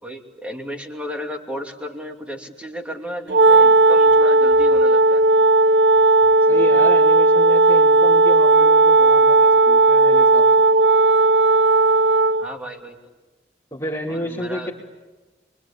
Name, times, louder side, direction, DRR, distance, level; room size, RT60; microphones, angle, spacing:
voice 1, 0.0-5.2 12.4-13.0 14.1-14.7, equal, 5° right, 2 dB, 2.8 m, -33 dB
Wind instrument woodwind instrument, 3.3-12.5, right 2 dB, 70° right, 0.9 m, -14 dB
voice 2, 6.5-10.5 13.7-14.7, equal, 15° left, -6 dB, 3.1 m, -30 dB
29.5 x 23.0 x 8.6 m, 1.2 s
head